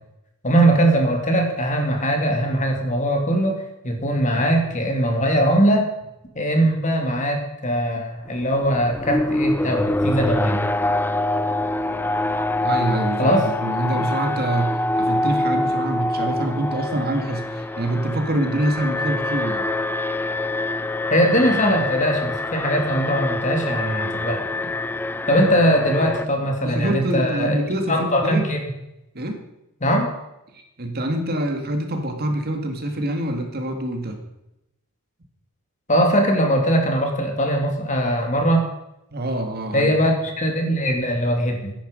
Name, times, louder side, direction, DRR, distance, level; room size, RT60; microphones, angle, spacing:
voice 1, 0.4-5.9 6.3-10.6 13.2-13.4 21.1-24.4 25.3-27.6 27.9-28.6 29.8-30.1 35.9-38.6 39.7-41.7, equal, 35° left, 3 dB, 2.5 m, -20 dB
Alarm, 8.3-26.3, left 2 dB, 10° left, 0.4 m, -25 dB
voice 2, 12.6-13.3 13.6-19.7 26.6-28.5 29.1-29.4 30.5-34.2 39.1-39.9, right 1 dB, 45° right, 5 dB, 1.9 m, -25 dB
15.5 x 10.5 x 5.2 m, 0.88 s
head